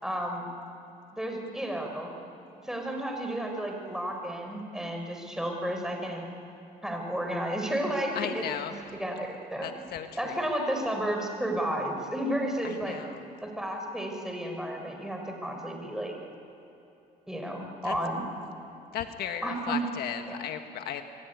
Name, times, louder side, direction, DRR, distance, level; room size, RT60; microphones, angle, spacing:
voice 1, 0.0-0.4 1.1-2.1 2.6-6.2 6.8-9.7 10.2-13.0 13.4-16.1 17.3-18.3 19.4-19.8 20.3-20.4, right 1 dB, 5° right, 2 dB, 5.0 m, -32 dB
voice 2, 8.2-8.8 9.6-10.4 12.6-13.2 17.8-17.9 18.9-21.0, left 9 dB, 70° left, 6 dB, 1.6 m, -35 dB
27.0 x 22.0 x 9.5 m, 2.9 s
cardioid pair, 110°, 17 cm